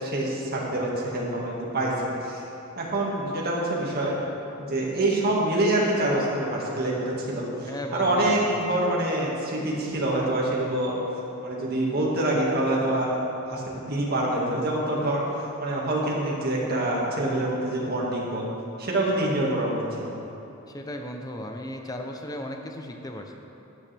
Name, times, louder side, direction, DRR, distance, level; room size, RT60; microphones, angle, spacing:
voice 1, 0.0-1.9 2.2-2.4 2.8-4.2 4.6-11.0 11.4-15.2 15.6-18.5 18.8-20.1, right 1 dB, 45° right, -4 dB, 2.0 m, -26 dB
voice 2, 7.7-8.6 20.7-23.4, left 1 dB, 15° left, 3 dB, 0.7 m, -36 dB
12.0 x 10.5 x 3.4 m, 2.9 s
head